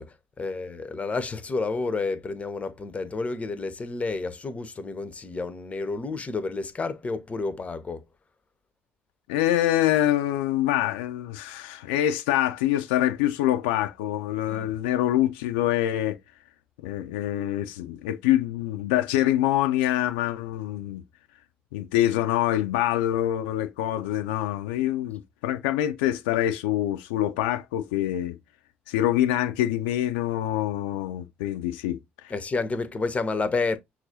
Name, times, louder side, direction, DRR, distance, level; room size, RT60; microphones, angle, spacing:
voice 1, 0.0-8.0 14.5-14.7 32.3-33.8, left 3 dB, 25° left, 0.6 m, -30 dB
voice 2, 9.3-16.2 16.8-21.0 21.7-28.4 28.9-32.3, left 13 dB, 65° left, 0.4 m, -25 dB
5.9 x 2.4 x 2.7 m
figure-of-eight pair, 50°, 5 cm